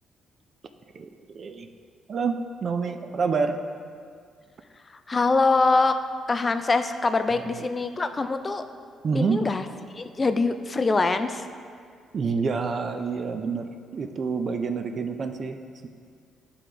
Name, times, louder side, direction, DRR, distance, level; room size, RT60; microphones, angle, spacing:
voice 1, 0.9-1.7 2.1-3.6 7.3-7.7 9.0-9.4 12.1-15.6, right 5 dB, 50° right, 6 dB, 0.4 m, -28 dB
voice 2, 5.1-6.0 6.3-8.6 9.1-9.6 10.0-11.4, left 3 dB, 30° left, 9 dB, 0.4 m, -23 dB
11.0 x 3.8 x 3.3 m, 2.1 s
cardioid pair, 90°, 0 cm